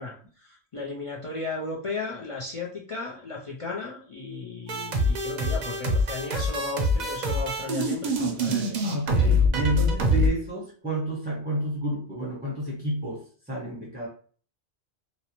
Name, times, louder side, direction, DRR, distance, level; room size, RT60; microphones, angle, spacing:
voice 1, 0.0-8.8, left 3 dB, 55° left, -4 dB, 0.3 m, -35 dB
sound 1, 4.7-10.3, left 1 dB, 55° right, 0.5 m, -24 dB
voice 2, 8.2-14.1, right 1 dB, 10° right, -5 dB, 0.6 m, -31 dB
2.6 x 2.0 x 2.8 m, 0.43 s
omnidirectional pair, 1.1 m